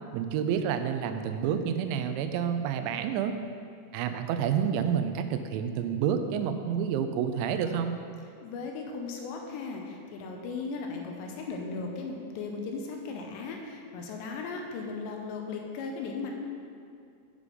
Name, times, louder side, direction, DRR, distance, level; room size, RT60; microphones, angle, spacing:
voice 1, 0.1-3.3 3.9-7.9, right 8 dB, 90° right, 8 dB, 2.9 m, -29 dB
voice 2, 8.4-16.3, left 4 dB, 80° left, 1 dB, 2.8 m, -37 dB
8.4 x 5.0 x 5.1 m, 2.4 s
omnidirectional pair, 5.1 m